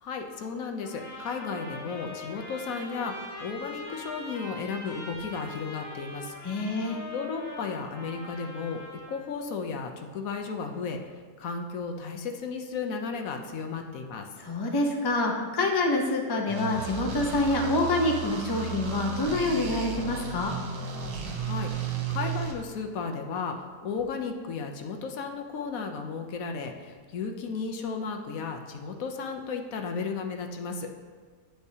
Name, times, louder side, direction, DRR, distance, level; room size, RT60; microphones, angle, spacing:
voice 1, 0.0-8.8 9.1-11.0 11.4-14.3 21.4-30.9, left 5 dB, 65° left, 4 dB, 1.1 m, -34 dB
sound 1, 0.8-9.2, left 2 dB, 85° left, 2.6 m, -42 dB
voice 2, 6.4-7.0 14.5-20.5, left 2 dB, 30° left, 1 dB, 0.4 m, -26 dB
sound 2, 16.5-22.5, right 6 dB, 70° right, 1.3 m, -34 dB
8.1 x 7.9 x 2.8 m, 1.5 s
omnidirectional pair, 1.7 m